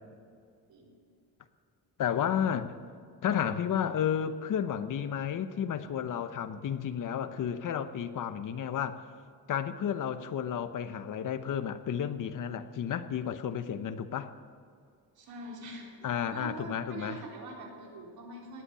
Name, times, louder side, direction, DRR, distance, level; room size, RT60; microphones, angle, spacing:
voice 1, 2.0-2.7 3.2-9.0 9.5-14.3 16.0-17.2, left 8 dB, 55° left, 10 dB, 0.9 m, -32 dB
voice 2, 15.2-18.6, right 2 dB, 70° right, -2 dB, 4.0 m, -44 dB
18.5 x 8.3 x 8.8 m, 2.3 s
cardioid pair, 145°, 38 cm